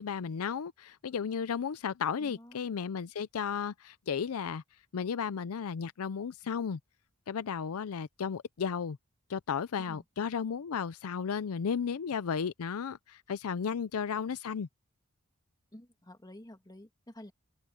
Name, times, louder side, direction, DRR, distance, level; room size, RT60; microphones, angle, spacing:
voice 1, 0.0-4.6 4.9-6.8 7.3-9.0 9.3-14.7, left 6 dB, 80° left, 0.5 m, -34 dB
voice 2, 2.2-2.6 9.8-10.0 15.7-17.3, left 1 dB, 20° left, 2.2 m, -50 dB
head